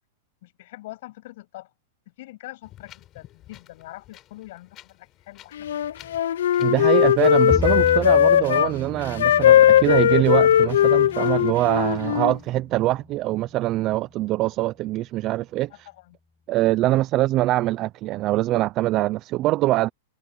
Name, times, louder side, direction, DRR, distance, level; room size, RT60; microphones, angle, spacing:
voice 1, 0.4-1.7 2.2-5.8 6.1-6.2 15.7-16.2 16.9-17.0, left 18 dB, 50° left, 7.7 m, -43 dB
Wind, 2.6-12.5, left 13 dB, 25° left, 7.1 m, -52 dB
Wind instrument woodwind instrument, 5.6-8.7 9.2-12.3, left 10 dB, 80° left, 0.5 m, -18 dB
voice 2, 6.6-15.9 16.5-19.9, right 16 dB, 25° right, 0.4 m, -23 dB
Bowed string instrument, 7.5-13.8, left 4 dB, 5° left, 1.8 m, -35 dB
supercardioid pair, 165°, 0 cm